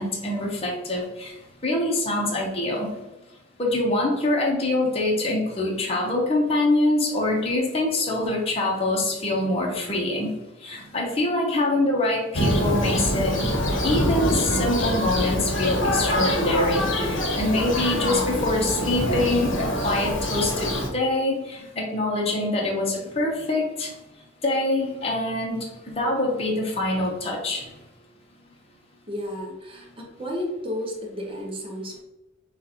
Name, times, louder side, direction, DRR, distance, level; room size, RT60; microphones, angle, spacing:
voice 1, 0.0-1.3 1.6-3.0 3.6-10.3 10.6-13.3 13.8-23.9 24.4-25.6 25.9-27.7, left 2 dB, 30° left, -2 dB, 0.8 m, -25 dB
Thunder, 12.3-20.9, equal, 65° left, 1.0 m, -24 dB
voice 2, 29.1-32.0, left 1 dB, 25° right, -1 dB, 0.9 m, -32 dB
6.3 x 2.5 x 2.9 m, 1.0 s
head